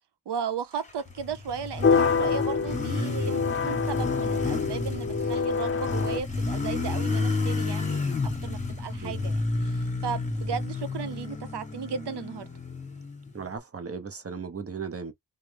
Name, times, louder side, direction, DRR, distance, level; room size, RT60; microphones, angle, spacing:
voice 1, 0.3-8.1 8.4-12.5, right 7 dB, 70° right, 0.7 m, -35 dB
Motorcycle, 0.9-13.6, left 3 dB, 15° left, 1.0 m, -31 dB
sound 1, 1.8-6.2, left 5 dB, 30° left, 0.4 m, -26 dB
voice 2, 13.3-15.1, right 5 dB, 35° right, 0.8 m, -36 dB
3.1 x 2.1 x 3.3 m
cardioid pair, 75°, 42 cm